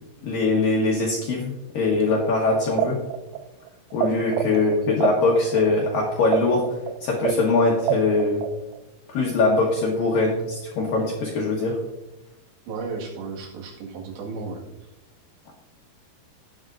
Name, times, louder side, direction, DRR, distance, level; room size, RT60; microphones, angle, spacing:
voice 1, 0.2-3.0 3.9-6.6 7.0-8.4 9.1-11.8, left 3 dB, 80° left, -3 dB, 2.0 m, -22 dB
sound 1, 2.8-4.1 4.3-8.8, right 12 dB, 85° right, 3.3 m, -26 dB
voice 2, 12.7-14.6, right 4 dB, 65° right, -1 dB, 3.7 m, -34 dB
17.5 x 8.0 x 2.5 m, 0.97 s
omnidirectional pair, 6.0 m